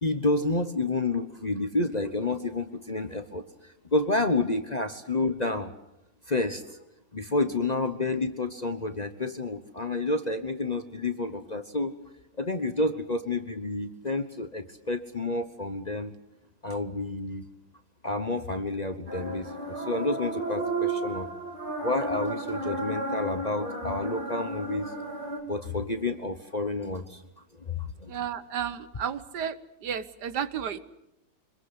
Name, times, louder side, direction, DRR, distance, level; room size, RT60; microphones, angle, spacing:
voice 1, 0.0-5.7 6.3-6.8 7.1-11.9 12.4-16.1 16.6-17.5 18.0-21.3 21.8-24.9 25.5-27.2 27.7-28.3, left 2 dB, 30° left, 8 dB, 1.0 m, -29 dB
sound 1, 19.1-25.4, right 2 dB, 25° right, 3.3 m, -33 dB
voice 2, 28.1-29.5 29.8-30.8, right 8 dB, 70° right, 13 dB, 1.7 m, -32 dB
25.5 x 21.0 x 7.9 m, 0.88 s
omnidirectional pair, 1.8 m